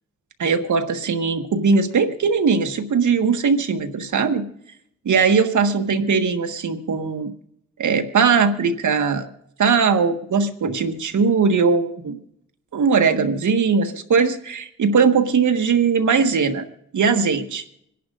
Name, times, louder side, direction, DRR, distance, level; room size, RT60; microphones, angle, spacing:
voice 1, 0.4-4.5 5.0-7.3 7.8-9.3 9.6-12.2 12.7-16.7 16.9-17.6, right 5 dB, 70° right, 7 dB, 1.6 m, -19 dB
26.0 x 11.0 x 2.6 m, 0.73 s
supercardioid pair, 50°, 31 cm